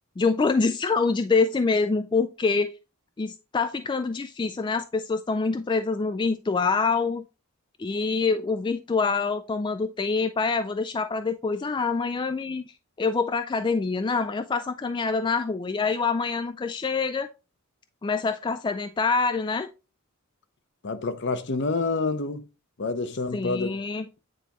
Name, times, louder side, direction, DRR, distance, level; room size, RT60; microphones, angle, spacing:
voice 1, 0.2-2.7 3.2-7.2 7.8-17.3 18.0-19.7 23.3-24.0, left 4 dB, 20° left, 0.3 m, -26 dB
voice 2, 20.8-22.4 22.8-23.8, left 3 dB, 55° left, 0.7 m, -28 dB
9.1 x 4.1 x 3.0 m
head